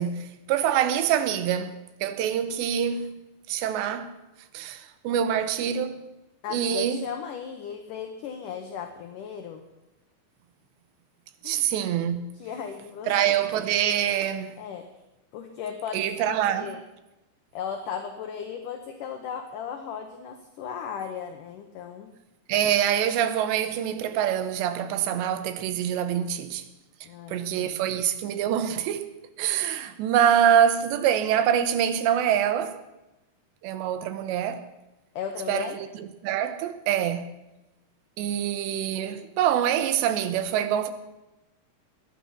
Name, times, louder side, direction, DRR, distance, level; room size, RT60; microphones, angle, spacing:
voice 1, 0.0-3.2 3.5-4.2 4.5-6.0 6.5-7.1 11.4-12.3 13.1-14.6 15.9-16.8 22.5-26.6 27.3-29.1 29.4-32.8 33.6-34.7 35.5-37.3 38.2-40.9, right 9 dB, 90° right, 3.2 m, -25 dB
voice 2, 6.4-9.6 11.4-11.6 12.4-13.5 14.6-14.9 15.3-16.8 17.5-22.1 27.0-27.7 35.2-35.8, left 7 dB, 70° left, 2.0 m, -36 dB
18.5 x 11.0 x 5.8 m
omnidirectional pair, 4.9 m